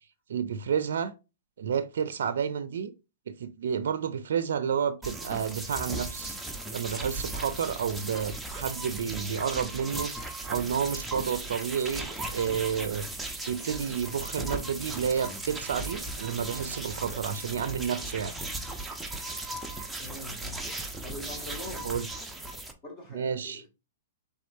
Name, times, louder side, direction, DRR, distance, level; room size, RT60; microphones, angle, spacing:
voice 1, 0.3-1.1 1.6-2.9 3.4-6.4 6.7-13.1 13.5-18.3 21.8-22.1 23.1-23.6, right 7 dB, 70° right, 0.5 m, -30 dB
sound 1, 5.0-22.7, right 2 dB, 5° right, 0.7 m, -37 dB
voice 2, 20.0-20.6 21.0-21.9 22.8-23.7, left 1 dB, 25° left, 2.0 m, -42 dB
4.3 x 3.5 x 2.6 m
hypercardioid pair, 130°, 0 cm